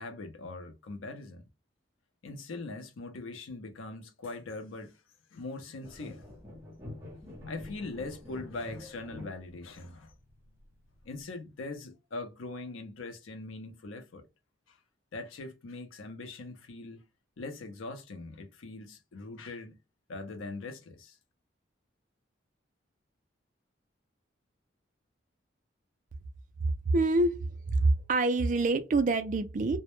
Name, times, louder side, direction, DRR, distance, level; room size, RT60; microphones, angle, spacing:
voice 1, 0.0-1.4 2.2-5.0 5.3-6.2 7.5-10.1 11.0-14.3 14.7-14.8 15.1-17.0 17.4-19.8 20.1-21.2, left 3 dB, 85° left, 0.5 m, -41 dB
sound 1, 5.8-11.2, left 2 dB, 15° right, 0.7 m, -46 dB
voice 2, 26.9-27.4 27.7-29.8, right 2 dB, 40° right, 0.3 m, -26 dB
2.0 x 2.0 x 2.9 m
head